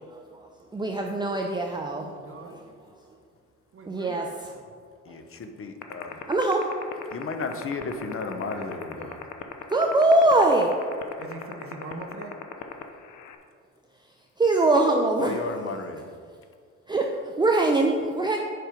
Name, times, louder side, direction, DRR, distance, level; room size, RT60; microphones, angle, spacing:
voice 1, 0.0-2.1 2.4-2.6 3.9-4.5 5.1-5.2 6.3-6.7 9.7-10.7 14.4-15.5 16.9-18.4, right 2 dB, 15° right, 2 dB, 0.6 m, -23 dB
voice 2, 2.0-2.6 3.7-4.6 8.3-9.2 11.2-12.3, right 3 dB, 45° right, 4 dB, 1.1 m, -42 dB
voice 3, 5.1-6.2 7.1-9.2 15.2-16.1, left 4 dB, 45° left, 7 dB, 0.9 m, -34 dB
sound 1, 5.8-13.4, left 12 dB, 75° left, 0.8 m, -35 dB
7.7 x 5.3 x 5.1 m, 2.1 s
cardioid pair, 90°, 30 cm